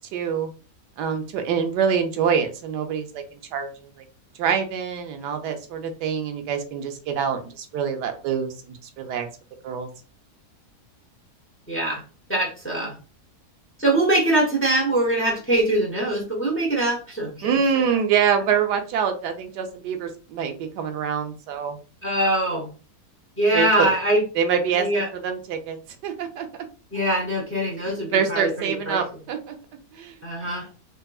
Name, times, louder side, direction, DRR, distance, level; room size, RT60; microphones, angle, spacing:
voice 1, 0.1-0.5 1.0-3.7 4.4-9.3 9.6-9.9 17.4-21.8 23.5-23.9 24.3-25.8 26.0-26.5 28.1-29.6 29.9-30.1, right 7 dB, 90° right, 5 dB, 1.3 m, -25 dB
voice 2, 11.7-12.0 12.3-12.9 13.8-17.5 22.0-22.7 23.4-24.2 24.7-25.1 26.9-29.0 30.2-30.7, right 1 dB, 10° left, -3 dB, 1.0 m, -23 dB
3.6 x 2.9 x 2.3 m, 0.35 s
omnidirectional pair, 1.7 m